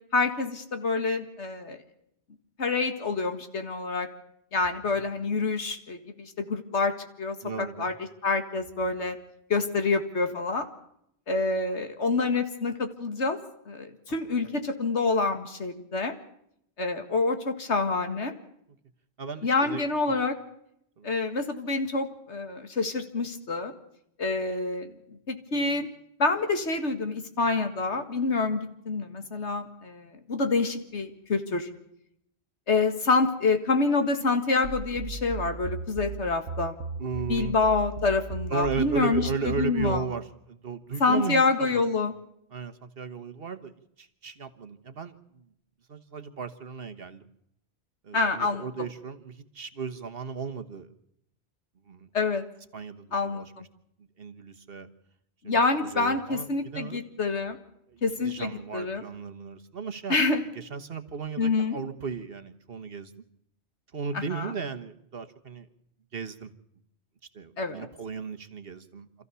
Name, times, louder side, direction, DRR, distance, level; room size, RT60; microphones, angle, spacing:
voice 1, 0.1-1.8 2.6-4.1 4.5-7.9 8.2-9.2 9.5-10.7 11.3-13.4 13.7-16.2 16.8-18.3 19.4-20.4 21.0-23.7 24.2-25.9 26.2-31.7 32.7-36.8 37.3-40.0 41.0-42.1 48.1-48.7 52.1-52.4 53.1-53.7 55.4-57.6 58.0-59.0 60.1-60.4 61.4-61.8 64.1-64.5 67.6-67.9, left 3 dB, 80° left, 7 dB, 2.2 m, -27 dB
voice 2, 7.4-7.9 14.1-14.6 19.2-20.1 21.0-21.1 37.0-37.5 38.5-41.8 42.5-45.4 45.9-47.3 48.0-50.9 51.8-52.1 52.7-53.5 54.2-54.9 55.4-57.0 57.9-60.2 60.5-63.1 63.9-65.7 66.1-66.5 67.3-69.1, right 5 dB, 55° right, 9 dB, 1.4 m, -36 dB
sound 1, 34.6-40.1, right 4 dB, 75° right, 1.3 m, -36 dB
27.0 x 14.5 x 6.9 m, 0.75 s
omnidirectional pair, 1.1 m